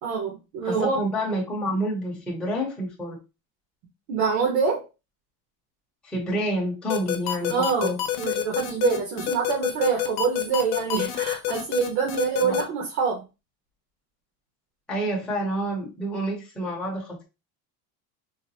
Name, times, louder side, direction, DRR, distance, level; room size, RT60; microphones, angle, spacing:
voice 1, 0.0-1.0 4.1-4.9 7.5-13.2, right 5 dB, 75° right, 0 dB, 1.2 m, -25 dB
voice 2, 0.6-3.2 6.0-8.0 12.4-12.6 14.9-17.2, equal, ahead, -5 dB, 0.7 m, -28 dB
sound 1, 6.9-12.6, left 13 dB, 55° left, 0.8 m, -27 dB
3.9 x 2.1 x 2.7 m, 0.27 s
cardioid pair, 170°, 41 cm